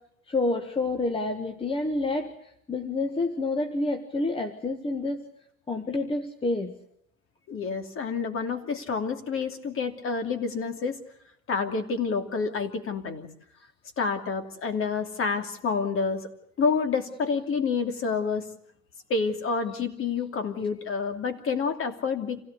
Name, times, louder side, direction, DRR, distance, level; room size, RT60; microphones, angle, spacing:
voice 1, 0.3-2.3 2.7-5.3 5.7-6.7, left 2 dB, 15° left, 6 dB, 1.7 m, -28 dB
voice 2, 7.5-11.0 11.5-13.3 14.0-16.3 16.6-18.4 19.1-22.4, left 5 dB, 30° left, 7 dB, 2.9 m, -28 dB
27.0 x 17.0 x 8.2 m, 0.72 s
hypercardioid pair, 95°, 42 cm